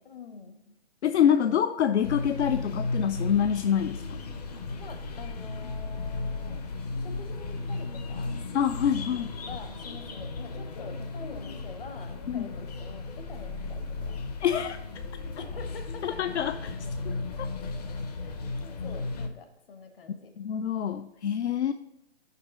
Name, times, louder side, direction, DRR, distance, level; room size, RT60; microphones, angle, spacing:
voice 1, 0.0-0.8 4.8-6.6 7.0-8.3 9.4-14.6 15.4-16.2 18.2-18.3 18.6-20.3, left 4 dB, 55° left, 6 dB, 1.1 m, -46 dB
voice 2, 1.0-4.0 8.5-9.3 12.3-12.5 14.4-14.8 16.0-16.8 17.0-17.1 17.4-17.5 20.4-21.7, left 9 dB, 80° left, 9 dB, 0.5 m, -26 dB
sound 1, 2.0-19.3, left 3 dB, 35° left, 0.6 m, -35 dB
5.7 x 4.5 x 4.9 m, 0.94 s
hypercardioid pair, 160°, 34 cm